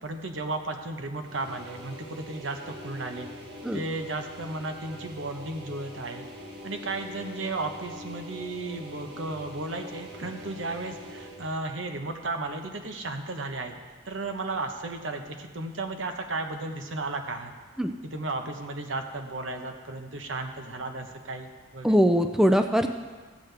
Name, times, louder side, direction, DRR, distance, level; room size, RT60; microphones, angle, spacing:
voice 1, 0.0-3.3 3.7-6.3 6.6-13.7 14.0-17.5 18.0-22.0, right 2 dB, 85° right, 5 dB, 1.0 m, -34 dB
sound 1, 1.2-11.6, equal, 60° right, 1.5 m, -43 dB
voice 2, 21.8-22.9, equal, 5° right, 6 dB, 0.3 m, -21 dB
14.5 x 8.1 x 3.4 m, 1.4 s
head